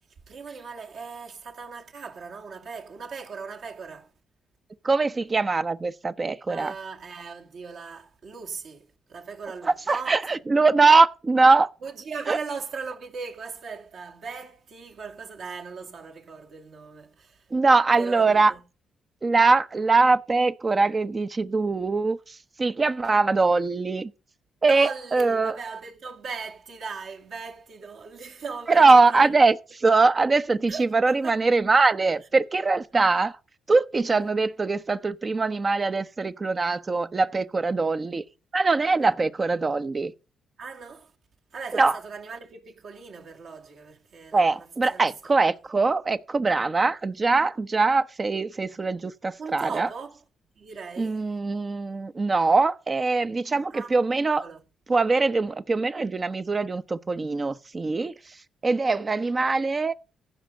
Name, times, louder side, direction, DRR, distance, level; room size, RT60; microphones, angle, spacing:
voice 1, 0.3-4.1 6.5-10.2 11.8-17.5 18.0-18.6 24.7-29.3 30.7-31.4 40.6-41.1 41.5-45.1 45.4-45.5 49.4-50.2 50.6-51.2 53.6-54.6, right 5 dB, 60° right, 2.5 m, -38 dB
voice 2, 4.8-6.7 9.6-11.7 12.3-12.4 17.5-18.5 19.2-24.1 24.6-25.5 28.7-33.4 33.7-38.2 38.5-40.1 41.7-42.0 44.3-49.9 51.0-54.5 54.9-58.4 58.6-59.9, right 3 dB, 30° right, 0.8 m, -22 dB
15.0 x 5.2 x 6.6 m
cardioid pair, 90°, 0 cm